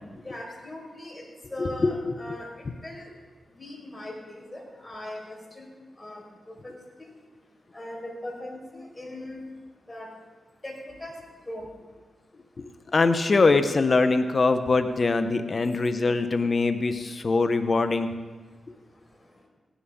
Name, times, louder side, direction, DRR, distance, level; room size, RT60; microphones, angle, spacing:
voice 1, 0.2-1.2 1.5-3.1 3.6-5.6 6.0-6.7 7.0-7.1 7.7-9.4 9.9-10.1 10.6-11.1 11.4-11.7, left 1 dB, 25° left, -1 dB, 4.8 m, -39 dB
voice 2, 1.6-2.1 12.6-18.1, left 3 dB, 50° left, 9 dB, 0.8 m, -23 dB
17.0 x 11.0 x 3.7 m, 1.3 s
cardioid pair, 55°, 0 cm